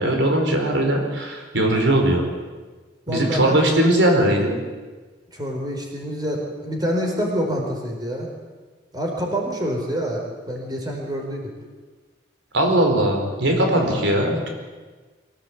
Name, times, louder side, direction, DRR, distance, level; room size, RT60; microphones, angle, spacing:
voice 1, 0.0-2.2 3.1-4.6 12.5-14.5, right 1 dB, 85° right, 2 dB, 4.6 m, -19 dB
voice 2, 3.1-3.6 5.3-8.3 8.9-11.5 13.8-14.0, equal, 20° right, 0 dB, 4.7 m, -27 dB
24.0 x 17.0 x 8.5 m, 1.3 s
head